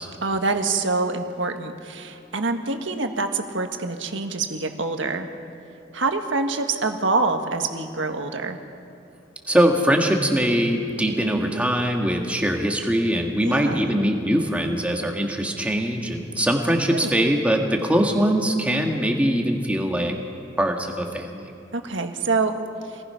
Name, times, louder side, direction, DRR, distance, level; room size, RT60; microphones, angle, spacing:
voice 1, 0.2-5.3 5.9-8.6 13.4-13.9 16.9-17.2 21.7-22.5, right 3 dB, 75° right, 5 dB, 1.6 m, -26 dB
voice 2, 9.5-20.2 20.6-21.5, equal, 5° right, 2 dB, 1.8 m, -22 dB
27.0 x 19.0 x 5.8 m, 2.7 s
head